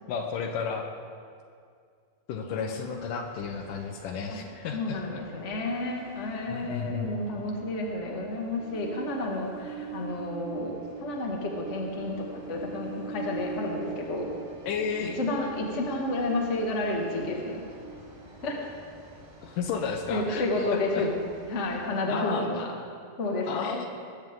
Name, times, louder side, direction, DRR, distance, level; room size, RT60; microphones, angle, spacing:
voice 1, 0.1-0.9 2.3-5.2 6.5-7.1 14.7-15.2 19.4-21.1 22.1-22.5 23.5-23.9, left 6 dB, 75° left, 4 dB, 2.4 m, -33 dB
voice 2, 2.5-3.1 4.3-4.4 4.7-10.7 11.0-12.2 12.5-14.3 15.0-17.6 18.4-18.6 20.1-21.1 21.4-22.7 23.2-23.7, left 2 dB, 25° left, -1 dB, 1.6 m, -31 dB
Train, 2.6-22.1, right 5 dB, 70° right, 6.0 m, -44 dB
21.0 x 15.5 x 3.8 m, 2.2 s
omnidirectional pair, 4.1 m